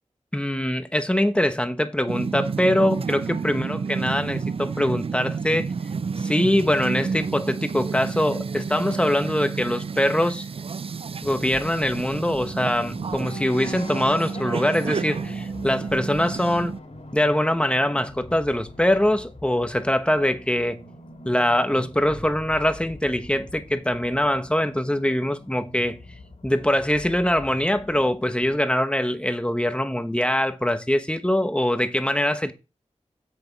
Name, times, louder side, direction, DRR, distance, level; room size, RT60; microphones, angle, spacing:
voice 1, 0.3-5.7 6.2-10.5 11.2-16.7 17.1-20.8 21.2-26.0 26.4-32.5, left 1 dB, 10° left, 1.1 m, -23 dB
sound 1, 2.1-16.8, right 5 dB, 50° right, 0.4 m, -30 dB
sound 2, 11.2-28.6, left 1 dB, 65° left, 2.8 m, -43 dB
7.8 x 6.9 x 4.6 m
wide cardioid pair, 70°, 12 cm